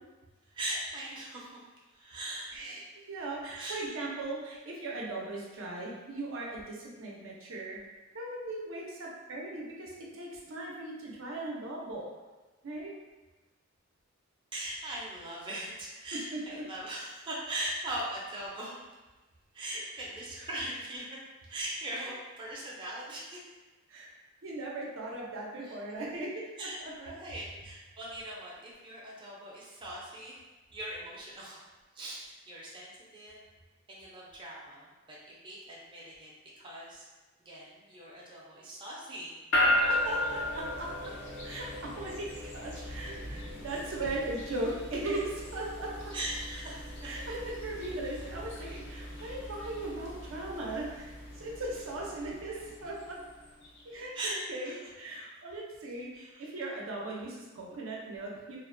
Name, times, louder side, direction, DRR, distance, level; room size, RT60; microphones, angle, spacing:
voice 1, 0.5-1.6 1.9-2.6 3.6-3.9 14.5-18.8 19.5-21.2 21.5-23.4 25.6-25.8 26.6-30.4 30.7-31.6 31.9-33.4 33.9-36.3 36.6-37.1 37.4-39.3 46.1-47.1 54.1-54.4 54.6-54.8 56.3-56.4, right 1 dB, 25° right, -5 dB, 0.5 m, -40 dB
voice 2, 2.5-7.8 8.1-12.1 12.6-12.9 16.3-16.4 19.6-19.8 20.4-20.5 22.0-22.1 23.9-24.1 24.4-26.9 39.9-40.9 41.4-45.9 47.0-53.2 53.9-58.6, right 2 dB, 75° right, -3 dB, 0.5 m, -38 dB
sound 1, 39.5-53.8, left 1 dB, 65° left, 0.5 m, -36 dB
2.4 x 2.1 x 2.5 m, 1.2 s
head